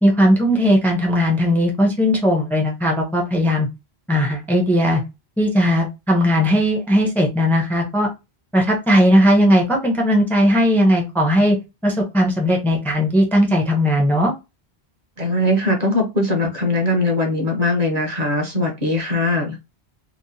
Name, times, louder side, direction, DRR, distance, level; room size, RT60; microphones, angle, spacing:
voice 1, 0.0-3.7 4.1-5.0 5.4-8.1 8.5-11.6 11.8-14.3, equal, ahead, 1 dB, 0.5 m, -17 dB
voice 2, 15.2-19.6, left 1 dB, 45° right, 3 dB, 0.8 m, -20 dB
2.9 x 2.1 x 2.6 m, 0.25 s
omnidirectional pair, 1.0 m